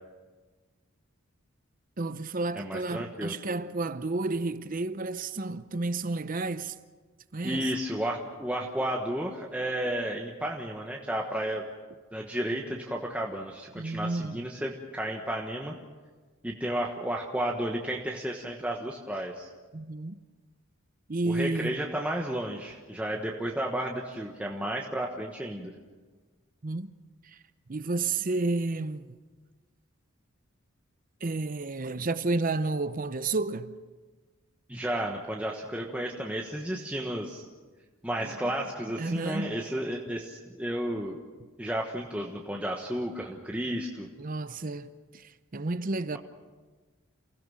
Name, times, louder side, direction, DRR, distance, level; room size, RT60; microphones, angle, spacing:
voice 1, 2.0-6.8 7.3-7.7 13.7-14.4 19.7-20.2 21.1-21.8 26.6-26.9 27.2-27.4 27.7-29.2 31.2-33.8 38.2-38.5 39.0-39.6 44.2-46.2, right 3 dB, 40° right, 0.7 m, -31 dB
voice 2, 2.5-3.3 7.4-11.6 12.1-15.7 16.4-19.5 21.2-25.7 34.7-37.5 38.0-41.2 41.6-44.1, right 1 dB, 5° right, 1.3 m, -32 dB
28.5 x 16.5 x 6.4 m
head